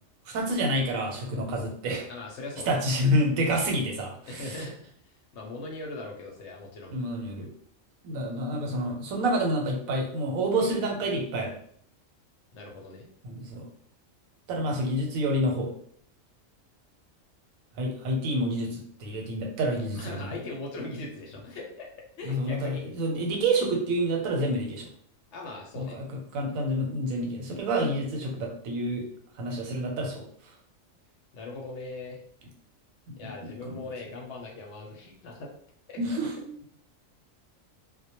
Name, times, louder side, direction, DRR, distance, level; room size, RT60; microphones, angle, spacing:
voice 1, 0.3-2.1 2.7-4.6 6.9-7.5 8.0-11.5 13.2-13.6 14.5-15.7 17.8-20.3 22.2-24.9 25.8-26.0 26.3-29.1 29.4-30.2 33.1-33.8 36.0-36.5, right 1 dB, 85° right, 1 dB, 1.1 m, -28 dB
voice 2, 2.1-2.8 4.3-4.7 5.0-6.9 12.5-13.1 19.9-21.9 22.2-22.8 25.3-26.0 31.3-32.2 33.2-35.5 35.9-36.0, left 2 dB, 65° left, 0 dB, 0.8 m, -40 dB
2.2 x 2.1 x 2.8 m, 0.62 s
omnidirectional pair, 1.4 m